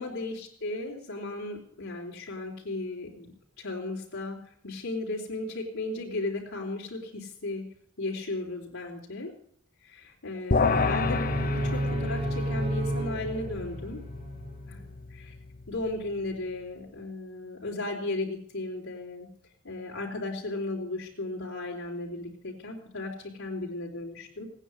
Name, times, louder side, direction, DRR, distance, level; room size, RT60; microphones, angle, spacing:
voice 1, 0.0-3.3 3.6-4.4 4.6-7.7 8.0-9.3 9.8-14.0 14.7-14.9 15.7-19.3 19.6-23.1 23.4-24.5, left 2 dB, 70° left, -4 dB, 3.7 m, -35 dB
sound 1, 10.5-16.0, left 4 dB, 45° left, 1.1 m, -30 dB
sound 2, 10.6-14.7, right 1 dB, 25° right, 1.4 m, -32 dB
17.5 x 9.9 x 7.9 m, 0.62 s
head